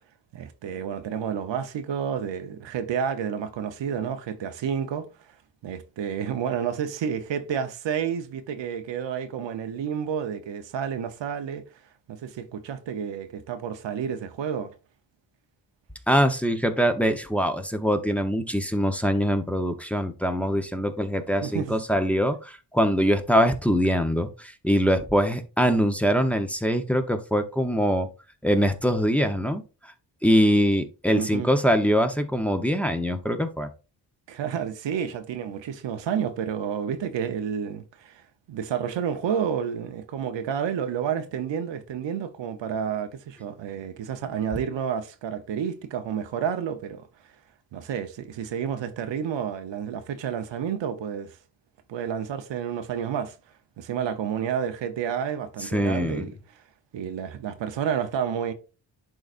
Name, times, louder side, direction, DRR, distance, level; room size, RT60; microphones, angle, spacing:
voice 1, 0.3-5.1 5.6-11.6 12.1-14.7 21.4-21.8 31.1-31.5 34.3-47.1 47.7-51.4 51.9-53.4 53.8-56.6 56.9-58.5, right 8 dB, 85° right, 0.9 m, -30 dB
voice 2, 16.1-28.1 28.4-29.6 30.2-33.7 55.7-56.3, equal, 5° left, 0.8 m, -23 dB
11.0 x 3.9 x 2.5 m
cardioid pair, 90°, 43 cm